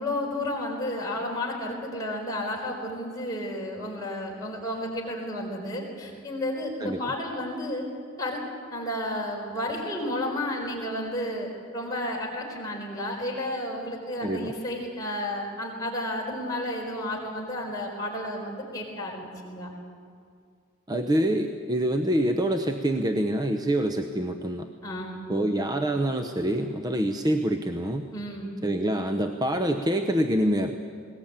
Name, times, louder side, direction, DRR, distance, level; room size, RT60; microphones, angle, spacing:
voice 1, 0.0-7.8 8.2-8.4 8.7-19.7 24.8-25.3 28.1-28.6, left 1 dB, 20° left, -2 dB, 4.5 m, -32 dB
voice 2, 6.8-7.1 14.2-14.5 20.9-24.7 25.3-28.1 28.6-30.8, right 1 dB, 20° right, 6 dB, 0.8 m, -26 dB
20.5 x 19.0 x 8.9 m, 2.2 s
head